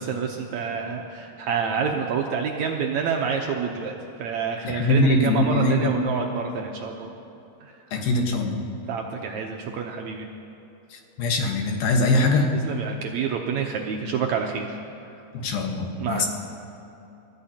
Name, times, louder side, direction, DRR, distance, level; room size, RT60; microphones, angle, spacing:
voice 1, 0.0-3.9 4.2-7.1 7.6-8.1 8.9-10.3 12.7-14.7 16.0-16.2, right 6 dB, 75° right, 2 dB, 1.7 m, -28 dB
voice 2, 4.6-6.0 7.9-8.6 11.2-12.5 15.3-16.3, left 2 dB, 85° left, 2 dB, 3.2 m, -22 dB
28.5 x 13.5 x 2.9 m, 2.9 s
omnidirectional pair, 4.0 m